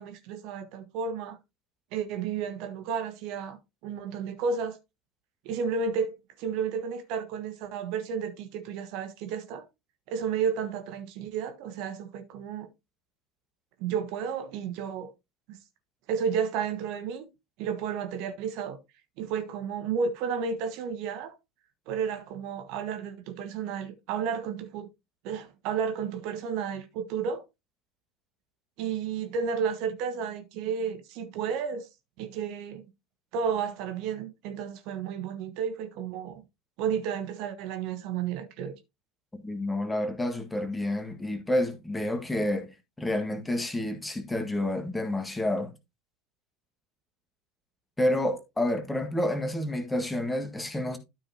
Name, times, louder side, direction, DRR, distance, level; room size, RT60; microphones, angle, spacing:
voice 1, 0.0-1.4 1.9-3.6 3.8-4.8 5.4-6.1 6.4-9.7 10.1-12.7 13.8-15.1 16.1-17.3 17.6-18.8 19.2-21.3 21.9-24.9 25.2-27.4 28.8-31.9 32.2-32.8 33.3-36.4 36.8-38.7, right 6 dB, 50° right, 1.3 m, -32 dB
voice 2, 39.3-45.7 48.0-51.0, left 1 dB, 10° left, 1.7 m, -29 dB
12.5 x 5.5 x 2.8 m
figure-of-eight pair, 75°, 0 cm